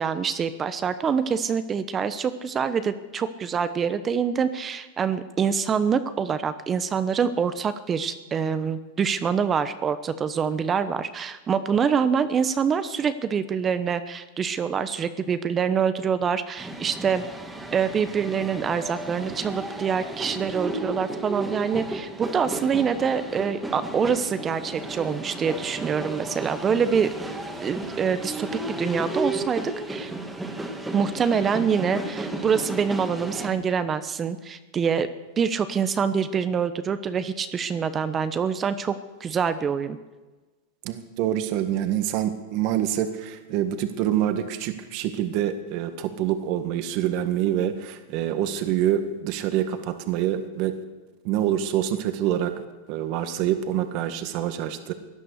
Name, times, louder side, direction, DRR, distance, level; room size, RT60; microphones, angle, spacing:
voice 1, 0.0-17.2 17.7-27.1 27.6-29.6 29.9-30.1 30.9-35.1 35.4-40.0, right 6 dB, 25° right, 12 dB, 0.9 m, -25 dB
sound 1, 16.6-33.5, right 2 dB, 10° right, 2.1 m, -34 dB
voice 2, 40.8-50.8 51.2-52.5 52.9-54.9, right 11 dB, 55° right, 9 dB, 1.7 m, -26 dB
17.5 x 11.5 x 6.6 m, 1.2 s
hypercardioid pair, 110°, 0 cm